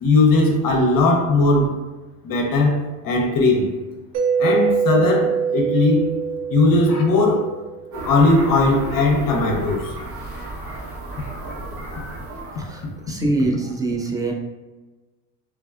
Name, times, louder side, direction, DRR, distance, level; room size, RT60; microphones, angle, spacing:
voice 1, 0.0-1.7 2.2-3.7 4.4-6.1 6.5-7.5 8.0-9.9, left 2 dB, 50° left, 0 dB, 0.7 m, -18 dB
Mallet percussion, 4.1-7.9, right 6 dB, 70° right, 0.6 m, -23 dB
sound 1, 7.9-13.1, right 2 dB, 55° right, 1.1 m, -33 dB
voice 2, 12.6-14.3, right 2 dB, 10° right, 0 dB, 0.3 m, -24 dB
3.5 x 2.2 x 2.3 m, 1.2 s
cardioid pair, 100°, 45 cm